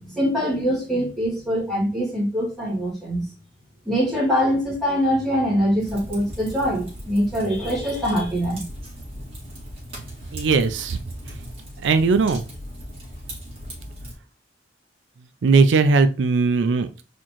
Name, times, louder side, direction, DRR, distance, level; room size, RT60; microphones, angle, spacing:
voice 1, 0.0-3.2 3.9-8.6, equal, ahead, -7 dB, 2.6 m, -23 dB
Fire, 5.8-14.1, equal, 35° right, 2.1 m, -38 dB
voice 2, 10.3-11.0 11.8-12.4 15.4-17.0, right 4 dB, 80° right, 10 dB, 0.4 m, -18 dB
4.3 x 3.7 x 3.0 m, 0.32 s
head